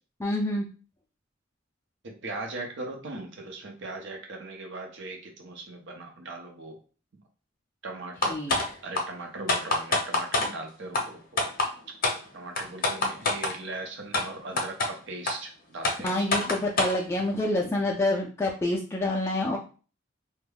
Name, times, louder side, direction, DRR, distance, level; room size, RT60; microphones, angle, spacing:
voice 1, 0.2-0.7 8.3-8.5 16.0-19.6, left 1 dB, 15° left, -2 dB, 0.3 m, -27 dB
voice 2, 2.0-6.8 7.8-11.4 12.3-16.4, right 2 dB, 70° right, 2 dB, 0.7 m, -39 dB
sound 1, 8.2-8.7 9.0-9.1 9.5-10.5 10.9-11.0 11.4-11.7 12.0-12.2 12.6-13.5 14.1-14.2 14.6-14.9 15.3-15.4 15.8-17.0, left 2 dB, 50° left, 0.7 m, -25 dB
2.3 x 2.2 x 3.3 m, 0.37 s
head